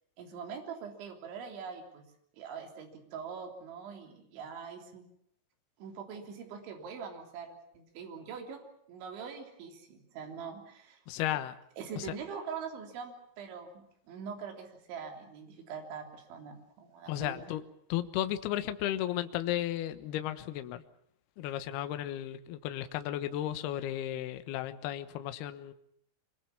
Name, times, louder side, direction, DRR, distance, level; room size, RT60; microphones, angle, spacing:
voice 1, 0.2-2.0 2.3-5.0 5.8-8.6 8.9-11.0 11.8-17.4, right 6 dB, 65° right, 3 dB, 5.6 m, -43 dB
voice 2, 11.1-11.6 12.0-12.1 17.1-17.6 17.9-20.8 21.4-25.7, left 12 dB, 70° left, 10 dB, 2.7 m, -34 dB
25.0 x 22.5 x 7.2 m, 0.70 s
omnidirectional pair, 5.8 m